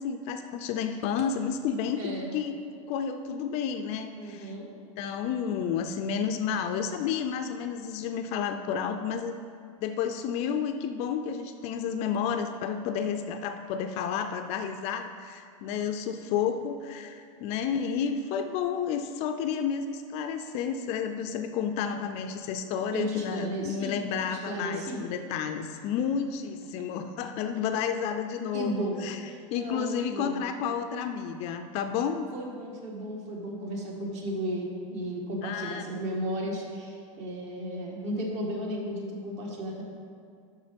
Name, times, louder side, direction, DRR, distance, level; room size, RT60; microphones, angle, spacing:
voice 1, 0.0-2.6 2.9-4.5 5.0-9.4 9.8-29.2 29.5-32.3 35.4-35.9, left 7 dB, 40° left, 7 dB, 0.4 m, -31 dB
voice 2, 1.9-2.4 4.2-4.7 21.8-22.1 22.9-24.0 24.2-25.0 28.5-30.4 32.3-39.8, equal, 40° right, 0 dB, 1.6 m, -34 dB
7.0 x 5.9 x 5.2 m, 2.3 s
supercardioid pair, 135°, 17 cm